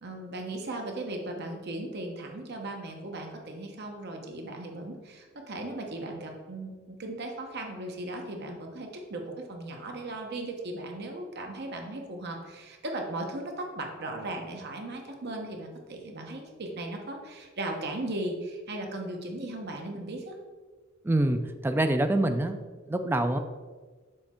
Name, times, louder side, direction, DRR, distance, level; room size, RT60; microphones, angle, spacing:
voice 1, 0.0-9.2 9.5-20.3, right 2 dB, 55° right, 2 dB, 1.0 m, -37 dB
voice 2, 21.0-22.6 22.9-23.4, right 1 dB, 10° right, 7 dB, 0.3 m, -25 dB
6.5 x 3.5 x 4.3 m, 1.4 s
head